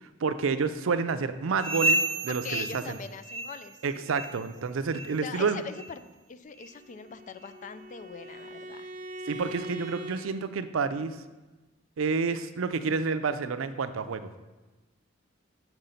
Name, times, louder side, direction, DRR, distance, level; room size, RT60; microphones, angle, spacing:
voice 1, 0.2-3.0 3.8-5.6 9.3-11.2 12.0-14.3, right 5 dB, 85° right, 11 dB, 0.5 m, -29 dB
sound 1, 1.6-3.8 4.1-4.5 4.9-5.1 5.7-5.9 6.6-6.7 7.4-7.5, right 1 dB, 30° right, 0.6 m, -31 dB
voice 2, 2.3-4.5 5.2-6.0 6.3-8.9, left 5 dB, 40° left, 11 dB, 0.4 m, -41 dB
Bowed string instrument, 6.7-10.3, right 2 dB, 45° right, 1.0 m, -42 dB
5.9 x 5.2 x 5.6 m, 1.2 s
head